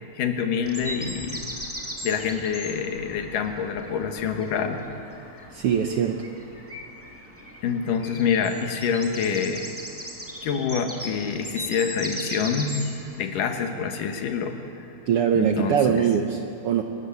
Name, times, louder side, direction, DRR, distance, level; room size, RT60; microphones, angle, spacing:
voice 1, 0.2-1.5 2.0-4.8 5.3-5.5 7.6-9.7 10.4-12.7 13.2-14.6 15.3-16.1, left 6 dB, 80° left, 5 dB, 2.9 m, -26 dB
sound 1, 0.6-13.2, equal, 5° right, 1.5 m, -38 dB
voice 2, 5.5-6.2 15.1-16.8, right 8 dB, 80° right, 4 dB, 1.3 m, -22 dB
27.0 x 13.5 x 8.4 m, 2.9 s
omnidirectional pair, 3.8 m